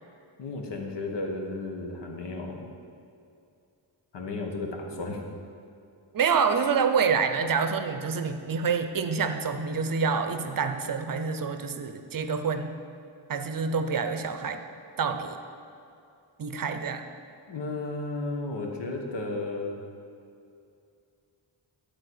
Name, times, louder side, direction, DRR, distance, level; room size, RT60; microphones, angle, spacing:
voice 1, 0.4-2.7 4.1-5.2 17.5-19.8, left 2 dB, 65° left, 2 dB, 1.4 m, -33 dB
voice 2, 6.1-12.8 13.3-14.6 15.0-15.4 16.4-17.0, right 5 dB, 50° right, 8 dB, 0.6 m, -27 dB
12.0 x 4.3 x 7.8 m, 2.5 s
wide cardioid pair, 175°, 44 cm